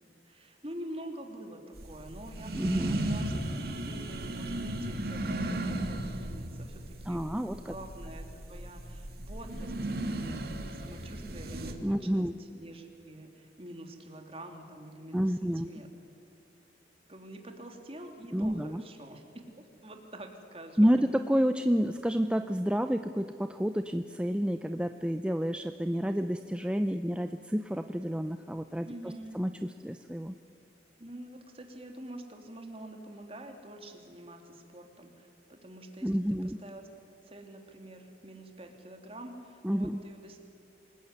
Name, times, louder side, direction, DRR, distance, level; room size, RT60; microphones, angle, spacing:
voice 1, 0.2-7.2 7.5-15.9 17.1-20.9 28.8-29.4 31.0-36.8 37.1-40.4, right 1 dB, 35° right, 4 dB, 3.0 m, -47 dB
sound 1, 1.8-11.7, right 1 dB, 60° right, 2.3 m, -36 dB
voice 2, 2.5-3.0 7.1-7.7 11.8-12.4 15.1-15.7 18.3-18.8 20.8-28.9 29.3-30.3 36.0-36.6 39.6-40.0, equal, 5° right, 8 dB, 0.5 m, -29 dB
26.5 x 20.0 x 9.7 m, 2.7 s
head